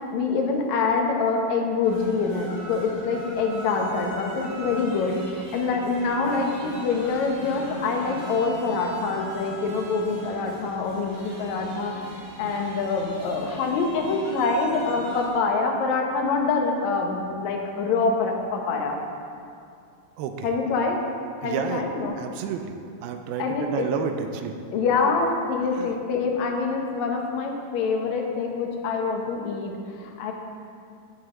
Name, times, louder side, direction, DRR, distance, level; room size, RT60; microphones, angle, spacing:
voice 1, 0.1-11.9 12.4-19.0 20.4-21.0 21.4-22.2 23.4-23.9 24.7-30.3, left 4 dB, 65° left, 1 dB, 2.0 m, -25 dB
sound 1, 1.8-15.3, left 1 dB, 30° right, 2.6 m, -39 dB
voice 2, 20.2-20.5 21.4-21.9 22.2-24.6 25.8-25.9, right 7 dB, 90° right, 6 dB, 2.5 m, -30 dB
11.0 x 10.5 x 3.8 m, 2.5 s
omnidirectional pair, 4.3 m